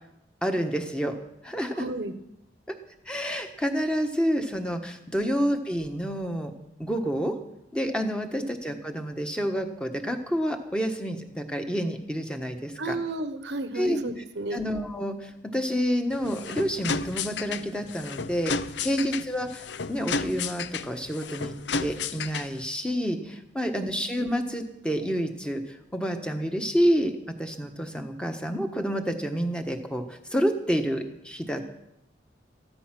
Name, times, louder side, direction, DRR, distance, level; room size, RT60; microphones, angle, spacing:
voice 1, 0.4-1.2 1.4-1.9 2.7-2.8 3.1-6.5 6.8-7.4 7.7-13.0 13.7-14.0 14.5-21.5 21.8-31.6, equal, 5° left, 4 dB, 1.3 m, -29 dB
voice 2, 1.7-2.1 12.8-14.6 18.9-19.1 23.7-23.9, right 2 dB, 75° right, 10 dB, 1.1 m, -33 dB
sound 1, 16.1-22.7, left 4 dB, 80° left, 0.6 m, -33 dB
14.0 x 13.5 x 6.0 m, 0.81 s
head